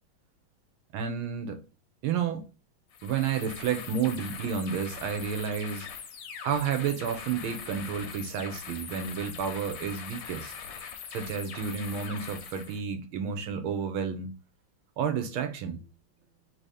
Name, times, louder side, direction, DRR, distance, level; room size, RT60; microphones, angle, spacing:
voice 1, 0.9-1.6 2.0-2.5 3.0-5.9 6.4-10.5 11.1-14.3 15.0-15.9, right 7 dB, 75° right, 1.5 m, -31 dB
sound 1, 2.9-12.8, left 7 dB, 90° left, 1.7 m, -42 dB
3.9 x 2.7 x 4.8 m
omnidirectional pair, 2.3 m